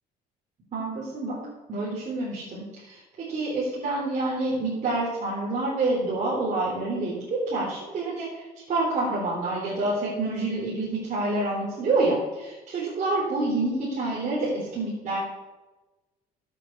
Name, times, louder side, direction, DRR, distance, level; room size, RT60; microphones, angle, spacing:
voice 1, 0.7-1.4 1.7-15.2, right 2 dB, 45° right, -6 dB, 3.6 m, -27 dB
13.0 x 7.7 x 4.6 m, 1.1 s
cardioid pair, 110°, 17 cm